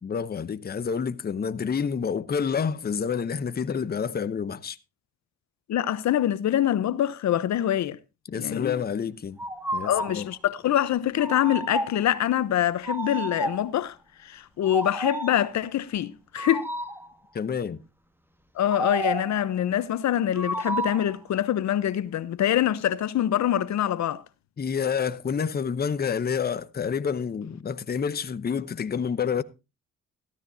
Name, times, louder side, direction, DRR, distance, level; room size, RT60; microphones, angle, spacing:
voice 1, 0.0-4.8 8.3-9.4 9.7-10.3 17.3-17.8 24.6-29.4, left 6 dB, 35° left, 0.9 m, -28 dB
voice 2, 5.7-8.0 8.4-8.8 9.8-14.0 14.2-16.7 18.5-24.2, left 11 dB, 70° left, 0.9 m, -25 dB
sound 1, 9.4-10.2 11.2-12.1 12.8-13.8 14.6-15.5 16.4-17.1 18.7-19.4 20.3-21.1, right 1 dB, 5° right, 1.7 m, -31 dB
14.5 x 13.0 x 2.7 m
cardioid pair, 105°, 29 cm